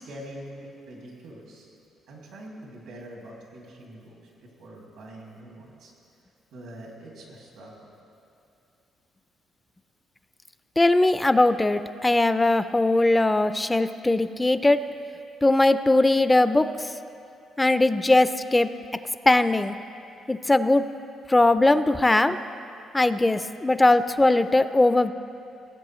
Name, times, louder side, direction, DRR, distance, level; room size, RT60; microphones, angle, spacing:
voice 1, 0.0-1.7 2.1-5.9 6.5-7.9, right 1 dB, 90° right, -2 dB, 2.2 m, -44 dB
voice 2, 10.8-14.8 15.4-16.9 17.6-18.7 19.3-19.7 20.3-20.9 21.3-22.4 22.9-25.1, left 2 dB, 15° left, 12 dB, 0.3 m, -20 dB
18.5 x 8.1 x 3.1 m, 2.7 s
cardioid pair, 90°, 0 cm